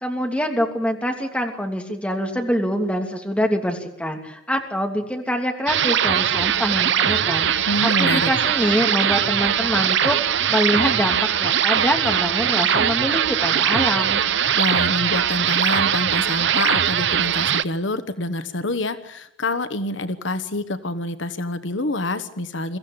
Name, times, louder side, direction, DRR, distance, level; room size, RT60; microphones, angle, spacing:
voice 1, 0.0-14.2, equal, 5° left, 3 dB, 2.9 m, -25 dB
sound 1, 5.7-17.6, right 9 dB, 65° right, 0.7 m, -21 dB
voice 2, 7.7-8.3 14.6-22.8, left 2 dB, 70° left, 11 dB, 1.3 m, -26 dB
23.5 x 15.0 x 8.8 m, 0.82 s
head